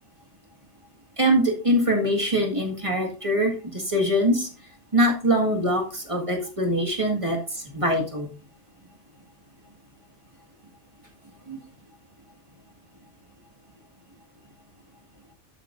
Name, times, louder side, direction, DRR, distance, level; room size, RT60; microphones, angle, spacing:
voice 1, 1.2-4.5 4.9-8.3 11.5-11.6, equal, 25° right, 1 dB, 1.8 m, -23 dB
12.5 x 8.2 x 2.6 m, 0.37 s
omnidirectional pair, 1.3 m